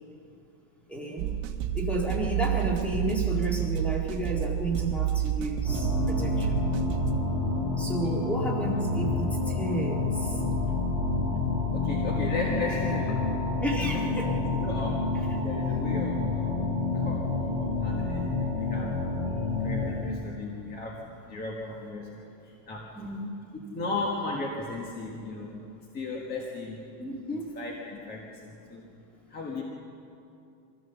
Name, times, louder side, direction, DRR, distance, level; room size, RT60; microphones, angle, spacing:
voice 1, 0.9-1.4 1.7-6.6 7.8-10.4 12.5-12.6 13.6-14.4 15.3-15.4 23.0-23.3 27.0-27.5, right 1 dB, 5° left, -1 dB, 1.8 m, -32 dB
sound 1, 1.2-7.2, right 11 dB, 45° right, 1.4 m, -29 dB
sound 2, 5.6-20.0, left 3 dB, 60° left, 4.9 m, -28 dB
voice 2, 11.7-13.2 14.2-19.2 19.6-22.9 23.7-25.6 25.9-26.8 27.5-28.9 29.3-29.6, left 3 dB, 20° left, -1 dB, 1.5 m, -36 dB
24.0 x 15.5 x 6.9 m, 2.6 s
supercardioid pair, 180°, 50 cm